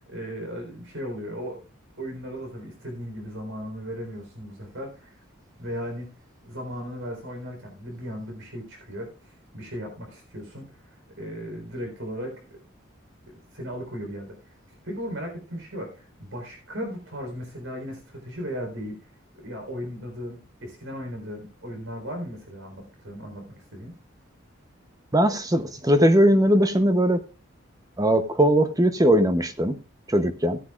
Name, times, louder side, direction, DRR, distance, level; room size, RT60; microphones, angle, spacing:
voice 1, 0.1-1.6 2.0-5.2 5.6-6.1 6.4-12.4 13.5-14.6 14.8-23.9, equal, 75° right, 4.0 m, -36 dB
voice 2, 25.1-27.2 28.0-29.8 30.1-30.6, equal, 20° right, 0.8 m, -20 dB
17.0 x 9.8 x 2.4 m
head